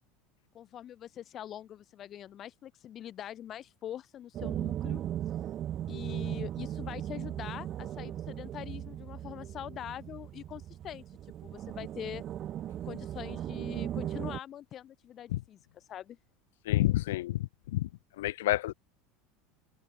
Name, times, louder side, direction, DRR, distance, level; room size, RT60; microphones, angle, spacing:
voice 1, 0.5-5.0 5.9-11.0 11.4-12.2 12.8-16.2, left 11 dB, 40° left, 6.8 m, -43 dB
sound 1, 4.3-14.4, right 11 dB, 40° right, 1.0 m, -37 dB
voice 2, 16.7-17.9 18.2-18.7, left 16 dB, 90° left, 2.4 m, -29 dB
supercardioid pair, 125°, 0 cm